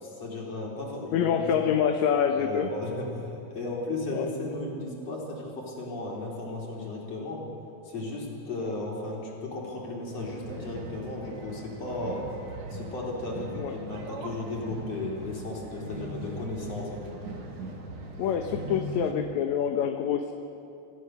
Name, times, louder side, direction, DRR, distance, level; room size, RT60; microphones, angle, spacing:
voice 1, 0.0-1.7 2.3-7.4 7.9-12.3 12.7-17.1, left 2 dB, 55° left, -3 dB, 5.1 m, -35 dB
voice 2, 1.1-2.7 4.1-4.3 13.5-13.7 18.2-20.3, left 8 dB, 75° left, 5 dB, 2.2 m, -26 dB
sound 1, 10.1-19.1, right 2 dB, 65° right, 3.2 m, -40 dB
27.5 x 15.5 x 6.7 m, 3.0 s
omnidirectional pair, 3.4 m